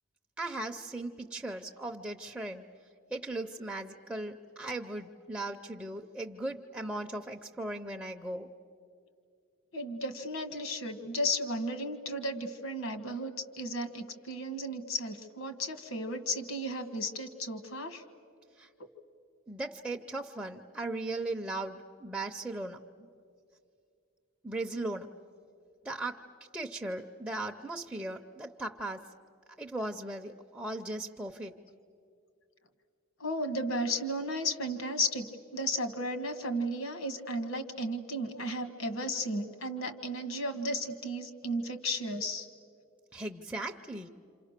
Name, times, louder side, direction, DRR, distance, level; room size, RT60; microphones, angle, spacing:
voice 1, 0.4-2.7 3.1-8.5 18.6-18.7 19.5-22.8 24.4-25.1 25.8-26.2 26.5-29.1 29.6-31.6 43.1-44.1, right 2 dB, 5° right, 1 dB, 0.6 m, -38 dB
voice 2, 9.7-18.0 33.2-35.3 35.5-42.5, equal, 70° left, 8 dB, 1.6 m, -34 dB
27.5 x 27.0 x 6.6 m, 2.4 s
head